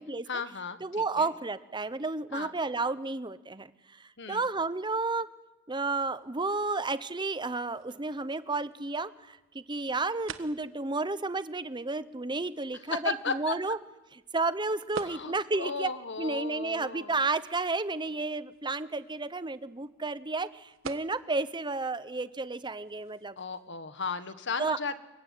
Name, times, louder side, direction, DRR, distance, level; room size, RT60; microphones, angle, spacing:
voice 1, 0.3-1.3 2.3-2.5 4.2-4.4 13.0-13.5 15.0-17.1 23.4-25.0, left 4 dB, 60° left, 12 dB, 1.6 m, -35 dB
voice 2, 0.8-3.7 4.0-5.3 5.7-13.8 14.3-15.9 16.2-23.4 24.6-24.8, right 3 dB, 20° right, 14 dB, 1.0 m, -32 dB
sound 1, 6.0-23.7, right 5 dB, 70° right, 1.4 m, -50 dB
26.5 x 22.5 x 9.7 m, 1.1 s
head